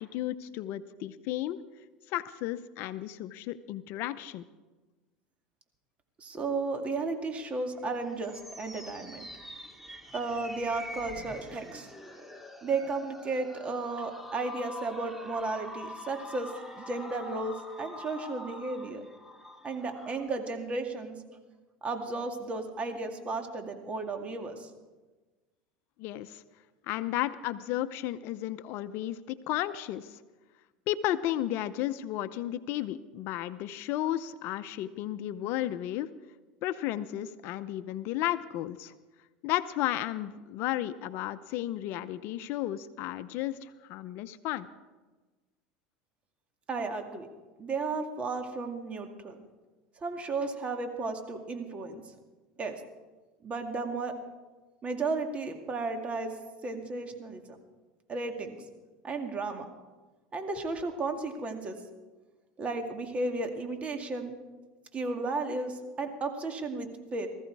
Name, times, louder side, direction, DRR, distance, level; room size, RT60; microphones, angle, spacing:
voice 1, 0.0-1.6 2.1-4.4 26.0-26.4 26.8-30.2 30.9-36.1 36.6-38.9 39.4-44.7, left 13 dB, 60° left, 13 dB, 0.6 m, -33 dB
voice 2, 6.2-9.3 10.1-11.9 12.6-19.0 19.6-21.1 21.8-24.7 46.7-47.3 47.6-49.4 50.0-52.0 52.6-52.8 53.4-54.2 54.8-56.3 56.6-57.6 58.1-58.6 59.0-59.7 60.3-61.8 62.6-64.3 64.9-67.3, right 3 dB, 30° right, 5 dB, 2.2 m, -34 dB
sound 1, 7.8-20.2, left 1 dB, 5° right, 2.1 m, -45 dB
19.0 x 14.5 x 4.7 m, 1.3 s
supercardioid pair, 105°, 4 cm